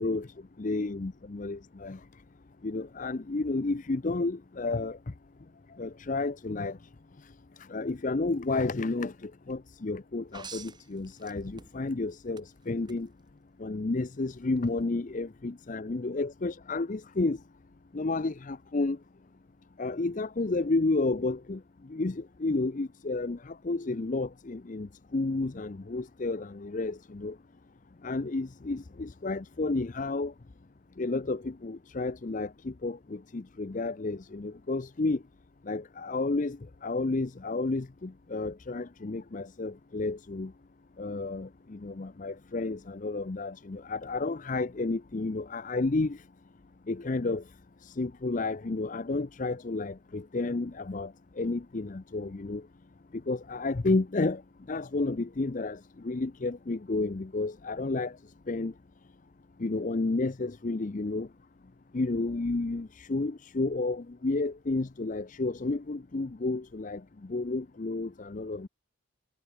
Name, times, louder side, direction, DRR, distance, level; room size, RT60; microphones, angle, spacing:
voice 1, 0.6-2.0 2.6-5.0 5.8-6.8 7.6-13.1 13.6-17.4 17.9-19.0 19.8-21.6 21.9-27.4 28.0-30.3 31.0-35.2 35.6-40.5 41.0-46.2 46.9-47.4 47.8-52.6 53.1-54.4 54.7-58.2 58.5-58.7 59.6-61.3 61.9-68.7, left 3 dB, 35° left, 0.5 m, -31 dB
sound 1, 10.3-11.9 12.4-13.0 14.6-14.7, right 4 dB, 20° right, 1.8 m, -46 dB
head